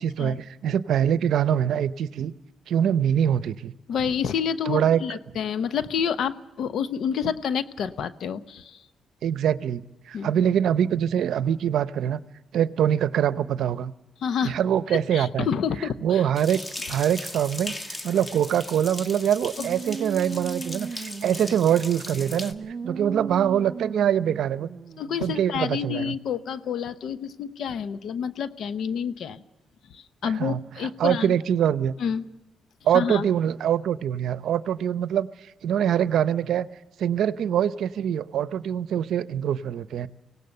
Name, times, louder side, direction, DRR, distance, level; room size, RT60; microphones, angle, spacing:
voice 1, 0.0-2.3 2.7-3.7 4.7-5.2 7.2-7.3 9.2-12.2 12.5-13.9 14.4-15.5 16.0-16.6 16.9-24.7 25.2-26.2 30.2-31.9 32.8-35.3 35.6-36.7 37.0-40.1, right 9 dB, 75° right, 15 dB, 0.7 m, -24 dB
voice 2, 3.9-8.8 10.1-10.3 14.2-14.6 14.9-16.2 25.0-29.4 29.9-31.4 32.0-32.2 32.9-33.2, left 7 dB, 70° left, 13 dB, 0.9 m, -28 dB
sound 1, 16.3-22.5, left 1 dB, 25° left, 1.6 m, -38 dB
sound 2, 19.6-25.4, right 5 dB, 45° right, 1.5 m, -37 dB
24.5 x 17.5 x 6.7 m, 1.0 s
cardioid pair, 75°, 0 cm